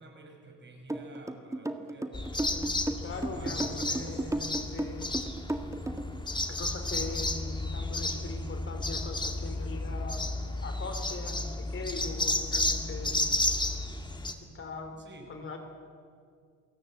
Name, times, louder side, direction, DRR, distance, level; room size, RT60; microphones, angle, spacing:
voice 1, 0.0-2.7 3.3-4.3 15.0-15.3, right 2 dB, 35° right, 2 dB, 5.6 m, -49 dB
sound 1, 0.9-6.2, right 1 dB, 10° right, 1.7 m, -34 dB
sound 2, 2.1-14.3, left 2 dB, 15° left, 2.1 m, -32 dB
voice 2, 3.0-5.4 6.5-10.3 10.6-13.3 14.5-15.0 15.3-15.6, left 3 dB, 45° left, 6 dB, 3.5 m, -41 dB
28.0 x 17.0 x 7.8 m, 2.2 s
cardioid pair, 90°, 30 cm